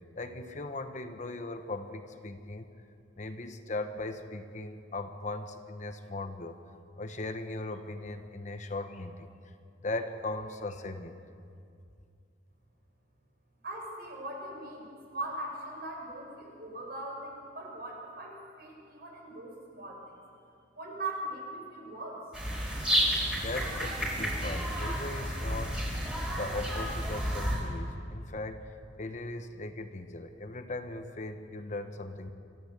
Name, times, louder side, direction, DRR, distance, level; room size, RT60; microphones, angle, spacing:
voice 1, 0.1-2.7 3.2-6.6 7.0-9.5 9.8-11.2 23.3-25.8 26.3-28.7 29.0-32.3, left 2 dB, 40° left, 8 dB, 1.0 m, -38 dB
voice 2, 13.6-20.2 20.7-22.2, right 1 dB, 55° right, 0 dB, 5.6 m, -40 dB
sound 1, 22.3-27.6, equal, 5° right, 4.7 m, -31 dB
26.5 x 14.0 x 8.1 m, 2.4 s
head